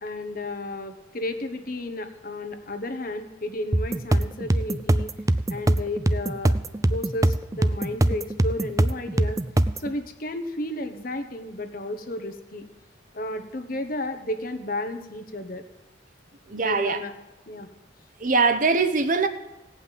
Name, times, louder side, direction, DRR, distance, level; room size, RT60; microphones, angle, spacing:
voice 1, 0.0-5.1 5.5-6.5 6.9-9.4 9.8-12.6 13.1-15.6 16.6-17.1 17.5-17.7, left 1 dB, 45° left, 7 dB, 1.2 m, -33 dB
sound 1, 3.7-9.9, right 1 dB, 15° right, 0.4 m, -23 dB
voice 2, 16.5-17.0 18.2-19.3, right 4 dB, 45° right, 8 dB, 0.9 m, -22 dB
17.0 x 5.7 x 9.2 m, 0.98 s
head